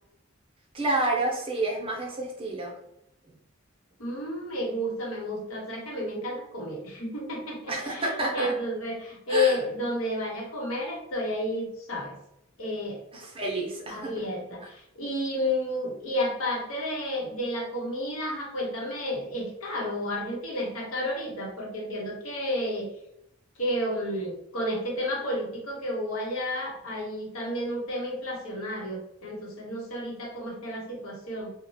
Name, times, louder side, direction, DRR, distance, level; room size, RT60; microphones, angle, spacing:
voice 1, 0.7-2.7 7.7-8.5 9.3-9.6 13.1-14.1, right 2 dB, 25° right, -1 dB, 0.5 m, -29 dB
voice 2, 4.0-12.2 12.6-13.0 13.9-22.9 23.6-31.5, left 1 dB, 85° left, -1 dB, 0.9 m, -31 dB
2.9 x 2.1 x 2.6 m, 0.80 s
head